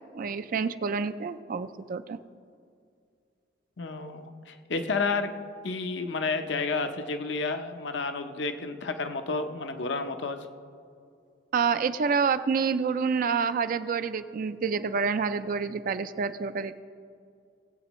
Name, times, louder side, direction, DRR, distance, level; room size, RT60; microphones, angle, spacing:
voice 1, 0.1-2.2 11.5-16.8, right 5 dB, 45° right, 11 dB, 0.3 m, -28 dB
voice 2, 3.8-5.3 5.6-10.4, left 4 dB, 65° left, 8 dB, 0.7 m, -31 dB
19.0 x 8.2 x 3.1 m, 2.3 s
head